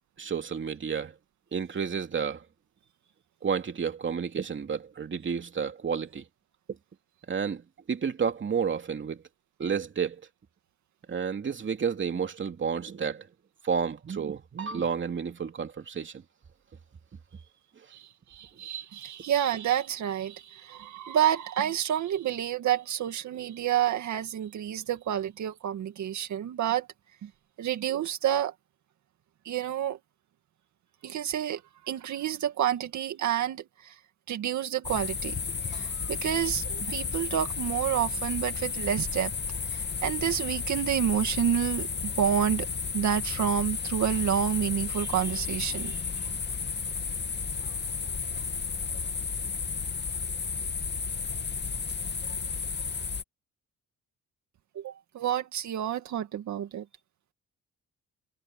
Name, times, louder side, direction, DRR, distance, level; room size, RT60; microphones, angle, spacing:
voice 1, 0.2-1.1 1.5-2.4 3.4-6.2 7.3-9.2 9.6-10.2 11.1-13.3 13.6-16.2, right 6 dB, 40° right, 2.8 m, -31 dB
voice 2, 17.9-26.9 27.2-27.3 27.6-28.5 29.4-30.0 31.0-34.0 34.3-35.4 35.7-39.3 39.7-41.9 42.2-42.7 42.9-46.0 54.8-56.8, right 10 dB, 70° right, 2.1 m, -29 dB
sound 1, 34.8-53.2, left 5 dB, 35° left, 2.5 m, -33 dB
cardioid pair, 90°, 30 cm